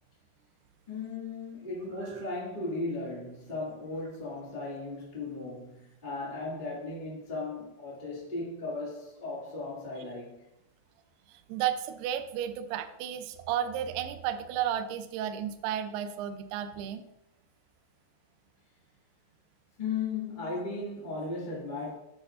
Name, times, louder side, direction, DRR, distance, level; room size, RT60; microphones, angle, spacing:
voice 1, 0.9-10.4 19.8-22.0, left 3 dB, 25° left, 0.9 m, -36 dB
voice 2, 11.3-17.0, right 10 dB, 90° right, 2.3 m, -33 dB
8.6 x 8.5 x 2.5 m
omnidirectional pair, 5.4 m